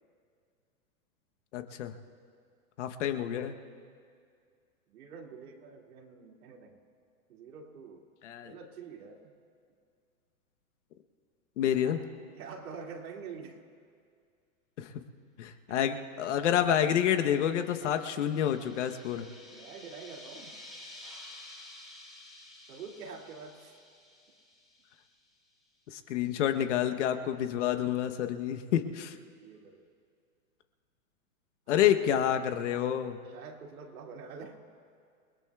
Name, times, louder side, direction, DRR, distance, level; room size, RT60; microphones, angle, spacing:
voice 1, 1.5-1.9 2.8-3.5 8.2-8.5 11.6-12.0 14.8-14.9 15.4-19.2 25.9-29.2 31.7-33.2, left 10 dB, 55° left, 7 dB, 1.1 m, -28 dB
voice 2, 4.9-6.8 7.3-8.1 8.4-9.3 11.8-13.6 15.7-15.8 19.5-20.6 22.7-23.8 27.0-27.1 29.4-29.9 31.7-32.0 33.2-34.6, right 5 dB, 75° right, 1 dB, 2.6 m, -46 dB
sound 1, 17.1-25.3, left 2 dB, ahead, 2.6 m, -51 dB
28.5 x 20.0 x 2.4 m, 2.2 s
hypercardioid pair, 160°, 44 cm